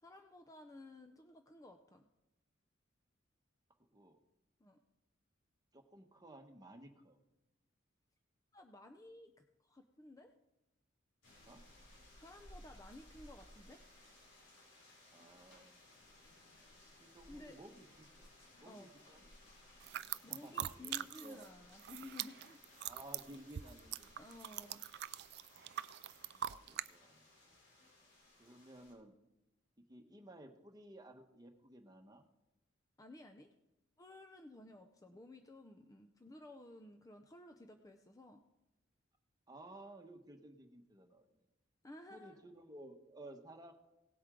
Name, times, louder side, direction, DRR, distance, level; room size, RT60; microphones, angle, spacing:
voice 1, 0.0-2.1 4.6-4.8 8.5-10.3 12.2-13.8 17.3-17.6 18.6-18.9 20.2-22.6 24.2-24.8 33.0-33.5 34.0-38.4 41.8-42.5, left 2 dB, 15° left, 6 dB, 0.6 m, -55 dB
voice 2, 5.7-7.2 11.5-11.6 15.1-15.8 17.0-18.3 18.6-19.2 20.3-21.4 22.8-24.1 26.2-27.3 28.4-29.1 29.8-32.2 35.0-35.2 39.5-41.5 42.1-43.7, right 1 dB, 20° right, 4 dB, 1.2 m, -56 dB
sound 1, 11.2-28.9, left 1 dB, 85° left, 4.4 m, -61 dB
sound 2, 19.8-21.5 21.7-26.9, right 12 dB, 55° right, 0.3 m, -43 dB
18.0 x 7.9 x 3.8 m, 0.98 s
head